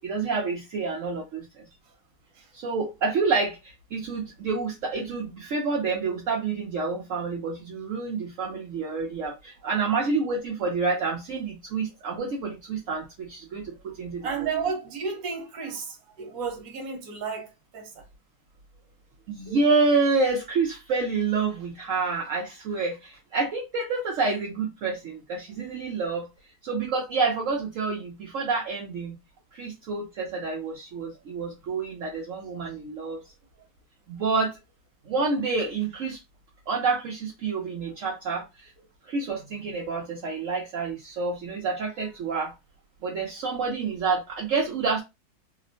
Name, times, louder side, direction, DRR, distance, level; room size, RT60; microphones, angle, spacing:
voice 1, 0.0-1.6 2.5-14.3 19.3-26.3 26.6-29.2 29.5-33.2 34.1-34.6 35.1-36.2 36.7-38.7 39.0-42.5 43.0-45.0, right 4 dB, 75° right, 0.7 m, -28 dB
voice 2, 14.2-18.0, right 5 dB, 55° right, 1.2 m, -32 dB
3.6 x 2.1 x 2.5 m
omnidirectional pair, 2.1 m